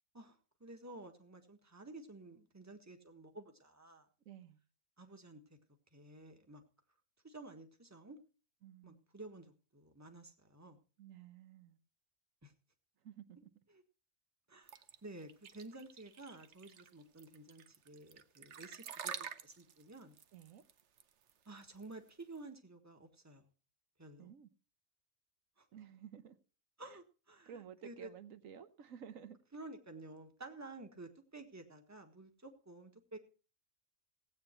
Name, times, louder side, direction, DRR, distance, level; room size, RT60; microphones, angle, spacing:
voice 1, 0.1-4.1 5.0-5.4 5.9-6.6 7.2-8.2 8.8-10.8 12.4-12.5 13.7-13.8 14.5-20.1 21.4-23.5 24.0-24.3 25.6-25.7 26.8-28.1 29.5-33.2, right 2 dB, 10° right, 1.5 m, -52 dB
voice 2, 4.3-4.6 8.6-9.0 11.0-11.8 13.0-13.4 20.3-20.6 24.2-24.5 25.7-26.3 26.9-27.0 27.5-29.4, right 8 dB, 80° right, 1.3 m, -53 dB
sound 1, 14.7-22.4, right 8 dB, 60° right, 1.1 m, -49 dB
16.5 x 8.8 x 4.4 m
omnidirectional pair, 1.4 m